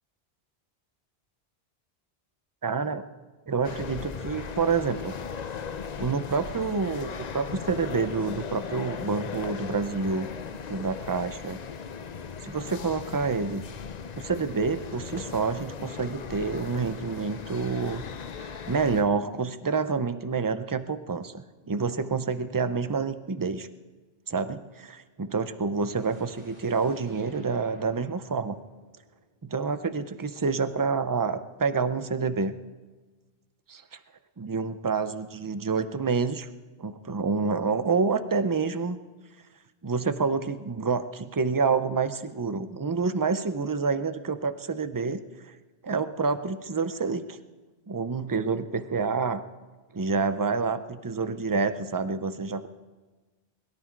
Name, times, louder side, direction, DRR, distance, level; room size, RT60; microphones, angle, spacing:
voice 1, 2.6-3.0 3.5-5.1 6.0-10.3 10.7-11.6 12.4-13.7 14.2-18.0 18.4-23.7 24.3-28.6 29.4-32.6 34.4-36.5 36.8-39.0 39.8-45.5 45.8-47.4 47.9-49.4 49.9-52.7, right 4 dB, 25° right, 11 dB, 0.6 m, -28 dB
sound 1, 3.6-19.0, left 6 dB, 45° left, 0.7 m, -38 dB
sound 2, 25.8-29.8, equal, 45° right, 5.0 m, -56 dB
21.5 x 12.5 x 4.6 m, 1.3 s
omnidirectional pair, 1.1 m